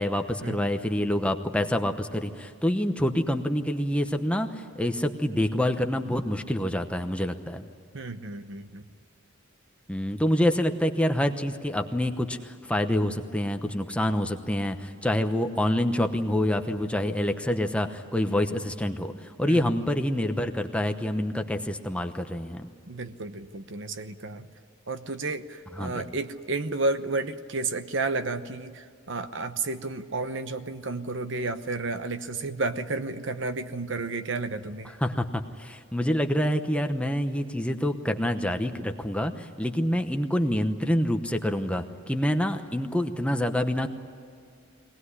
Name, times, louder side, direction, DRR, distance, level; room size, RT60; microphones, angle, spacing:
voice 1, 0.0-7.7 9.9-22.7 25.8-26.0 34.8-43.9, left 1 dB, 5° left, 6 dB, 0.9 m, -27 dB
voice 2, 7.9-8.8 19.5-19.6 22.9-24.5 24.9-34.9, right 3 dB, 60° right, 10 dB, 1.0 m, -32 dB
23.0 x 18.5 x 9.8 m, 2.4 s
head